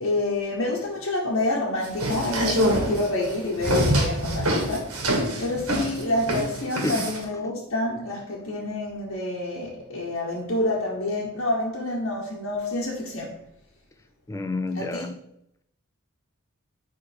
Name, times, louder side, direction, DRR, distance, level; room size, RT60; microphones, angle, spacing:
voice 1, 0.0-13.3 14.7-15.1, left 2 dB, 65° left, -6 dB, 1.1 m, -28 dB
sound 1, 1.8-7.2, equal, 80° right, 1.6 m, -25 dB
voice 2, 6.7-7.1 14.3-15.1, left 2 dB, 15° left, 8 dB, 0.3 m, -29 dB
9.2 x 3.4 x 3.4 m, 0.78 s
head